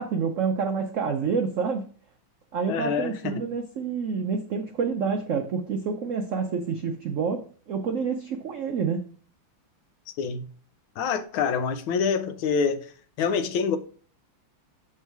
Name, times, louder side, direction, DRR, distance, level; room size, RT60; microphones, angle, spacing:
voice 1, 0.0-1.9 2.5-9.0, right 5 dB, 80° right, 0.7 m, -28 dB
voice 2, 2.7-3.4 10.2-10.4 11.0-12.9 13.2-13.8, left 6 dB, 90° left, 1.5 m, -26 dB
7.4 x 3.6 x 4.6 m
omnidirectional pair, 2.1 m